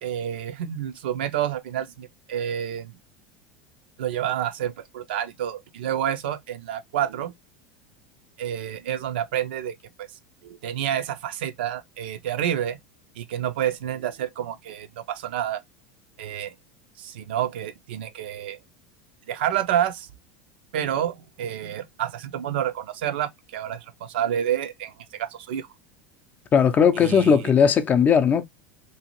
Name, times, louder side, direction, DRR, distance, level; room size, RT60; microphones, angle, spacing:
voice 1, 0.0-3.0 4.0-7.3 8.4-10.1 10.4-12.8 13.2-15.6 16.2-16.5 17.0-18.6 19.3-20.1 20.7-25.7 27.0-27.5, right 10 dB, 75° right, 0.4 m, -29 dB
voice 2, 26.5-28.4, left 7 dB, 30° left, 0.5 m, -18 dB
2.7 x 2.5 x 2.8 m
hypercardioid pair, 90°, 5 cm